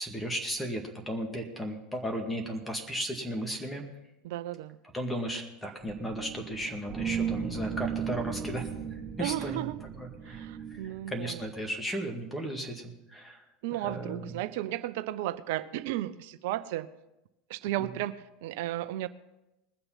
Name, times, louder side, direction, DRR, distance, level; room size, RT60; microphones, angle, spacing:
voice 1, 0.0-3.8 4.9-9.6 10.0-13.4 13.8-14.3, equal, 10° left, 2.0 m, -35 dB
voice 2, 4.2-4.8 9.2-9.8 10.2-11.5 13.6-16.9 17.5-19.1, right 14 dB, 65° right, 0.5 m, -34 dB
sound 1, 5.8-11.8, right 7 dB, 15° right, 2.0 m, -36 dB
20.5 x 6.8 x 5.7 m
hypercardioid pair, 80°, 0 cm